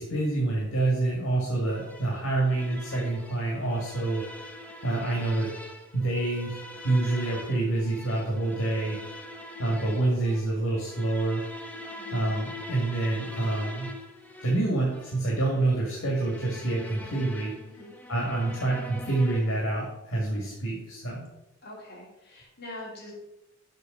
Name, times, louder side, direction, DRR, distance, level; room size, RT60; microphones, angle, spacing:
voice 1, 0.0-4.2 4.8-5.5 5.9-9.0 9.6-11.4 12.1-13.9 14.4-17.5 18.1-21.3, right 2 dB, 90° left, -3 dB, 2.0 m, -27 dB
sound 1, 1.7-19.7, left 1 dB, 10° left, 0.8 m, -43 dB
voice 2, 11.9-12.3 17.6-17.9 21.6-23.1, left 1 dB, 55° left, -4 dB, 2.7 m, -44 dB
6.6 x 5.9 x 5.3 m, 0.93 s
head